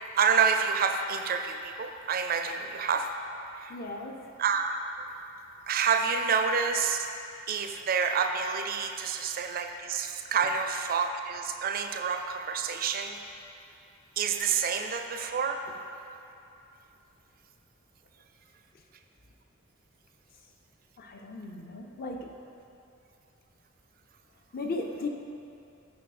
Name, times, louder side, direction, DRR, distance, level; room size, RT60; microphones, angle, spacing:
voice 1, 0.1-3.1 3.6-3.7 4.4-4.8 5.7-7.1 7.5-13.2 14.2-15.7, right 6 dB, 45° right, 6 dB, 0.4 m, -28 dB
voice 2, 3.7-4.2 21.0-22.3 24.5-25.1, left 3 dB, 45° left, 2 dB, 0.6 m, -36 dB
7.9 x 4.4 x 5.0 m, 2.7 s
head